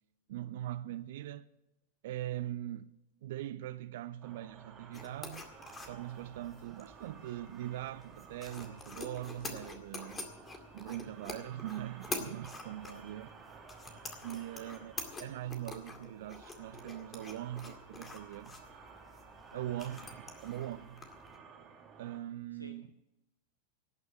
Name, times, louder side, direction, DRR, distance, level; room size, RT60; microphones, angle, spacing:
voice 1, 0.3-1.5 2.0-2.9 3.2-5.5 5.9-10.2 10.7-13.3 14.2-18.6 19.5-21.1 22.0-22.9, right 13 dB, 55° right, 0.5 m, -41 dB
sound 1, 4.2-22.2, right 6 dB, 25° right, 2.6 m, -55 dB
sound 2, 4.9-21.4, left 3 dB, 15° left, 2.1 m, -47 dB
voice 2, 19.5-19.8 22.5-23.0, equal, 85° right, 0.8 m, -52 dB
18.0 x 6.3 x 8.7 m
figure-of-eight pair, 90°, 0 cm